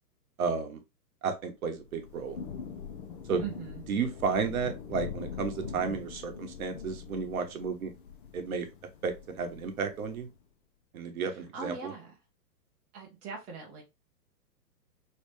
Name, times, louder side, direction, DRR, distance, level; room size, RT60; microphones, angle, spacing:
voice 1, 0.4-0.8 1.2-2.4 3.3-3.4 3.9-7.9 8.3-8.7 9.0-10.3 10.9-11.9, right 5 dB, 60° right, 5 dB, 1.0 m, -32 dB
Thunder / Rain, 1.8-10.4, left 6 dB, 35° left, 0.5 m, -43 dB
voice 2, 3.4-3.8 11.3-12.1 12.9-13.8, right 6 dB, 15° right, -2 dB, 0.6 m, -41 dB
3.2 x 2.9 x 3.2 m, 0.24 s
hypercardioid pair, 130°, 49 cm